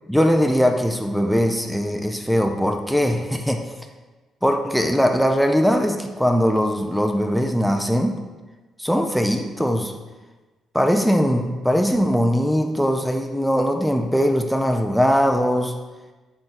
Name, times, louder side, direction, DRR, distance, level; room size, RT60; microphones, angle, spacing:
voice 1, 0.1-3.6 4.4-8.2 8.8-9.9 10.7-15.7, equal, ahead, 4 dB, 0.4 m, -20 dB
5.0 x 3.6 x 2.9 m, 1.2 s
cardioid pair, 90°, 0 cm